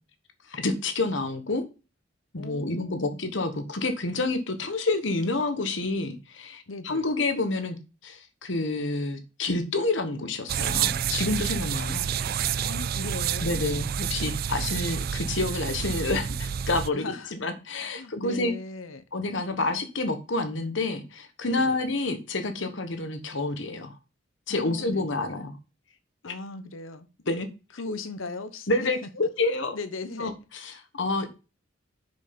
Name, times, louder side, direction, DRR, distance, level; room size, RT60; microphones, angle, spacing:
voice 1, 0.5-1.7 2.3-7.8 8.0-12.1 13.4-17.0 17.3-18.5 19.1-23.9 24.5-25.6 26.2-26.3 27.3-27.5 28.7-29.7 30.2-31.4, left 2 dB, 70° left, 1.2 m, -28 dB
voice 2, 2.4-3.3 6.7-7.1 12.6-13.9 16.9-17.3 17.9-19.0 21.5-21.8 24.5-25.4 26.2-27.1 27.7-28.9 29.7-30.3, left 3 dB, 90° left, 0.9 m, -38 dB
sound 1, 10.5-16.9, right 8 dB, 50° right, 0.3 m, -29 dB
6.2 x 5.5 x 5.2 m
head